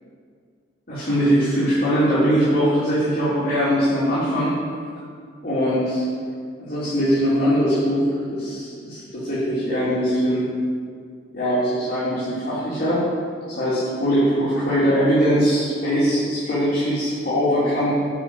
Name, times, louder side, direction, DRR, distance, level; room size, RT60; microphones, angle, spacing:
voice 1, 0.9-4.5 5.4-6.0 6.6-10.5 11.3-13.0 13.5-17.9, equal, 45° left, -14 dB, 3.1 m, -21 dB
8.8 x 6.3 x 8.0 m, 2.2 s
head